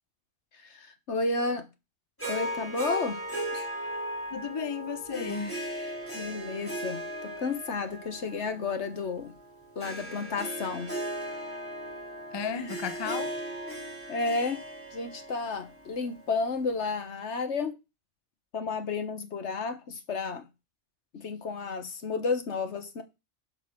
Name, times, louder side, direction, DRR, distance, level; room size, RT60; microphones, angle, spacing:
voice 1, 0.6-1.7 2.3-3.2 3.5-3.7 6.1-9.3 9.7-10.9 14.1-14.6 14.9-17.7 18.5-20.4 21.1-23.0, left 4 dB, 70° left, 1.5 m, -32 dB
Harp, 2.2-16.6, right 1 dB, 10° left, 3.1 m, -37 dB
voice 2, 4.3-5.6 12.3-13.3, left 5 dB, 30° left, 0.5 m, -33 dB
8.2 x 4.9 x 6.2 m
omnidirectional pair, 1.3 m